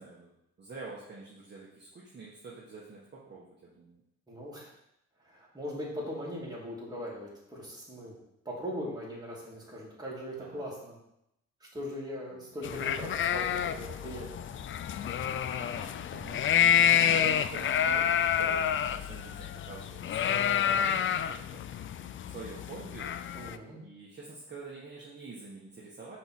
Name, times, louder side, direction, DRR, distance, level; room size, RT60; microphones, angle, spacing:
voice 1, 0.0-4.0 10.4-10.6 12.3-12.6 13.1-13.2 15.6-16.4 16.6-21.9 22.2-23.1 23.8-26.2, right 3 dB, 35° right, -6 dB, 1.5 m, -47 dB
voice 2, 4.3-4.7 5.2-8.2 8.4-11.0 11.6-14.5 16.1-16.4 20.6-21.0 23.3-23.8, equal, 15° right, -5 dB, 2.8 m, -40 dB
sound 1, 12.6-23.6, left 9 dB, 40° left, 0.4 m, -28 dB
5.4 x 4.4 x 6.1 m, 0.81 s
cardioid pair, 90°, 30 cm